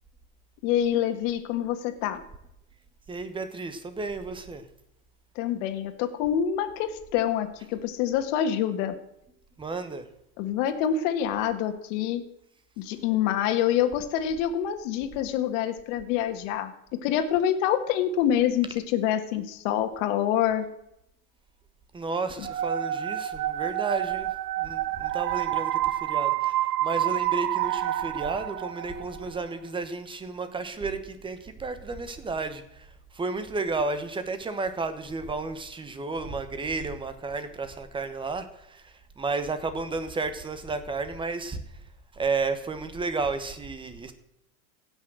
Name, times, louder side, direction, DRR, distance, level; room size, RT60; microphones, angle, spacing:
voice 1, 0.6-2.2 5.4-9.0 10.4-12.2 12.8-16.7 17.0-20.7, left 10 dB, 55° left, 8 dB, 1.8 m, -26 dB
voice 2, 3.1-4.6 9.6-10.0 21.9-24.3 24.6-32.9 33.1-41.6 42.1-44.1, right 3 dB, 10° right, 10 dB, 1.1 m, -32 dB
sound 1, 22.4-29.2, right 13 dB, 80° right, 0.9 m, -28 dB
16.5 x 6.4 x 6.2 m, 0.81 s
supercardioid pair, 140°, 45 cm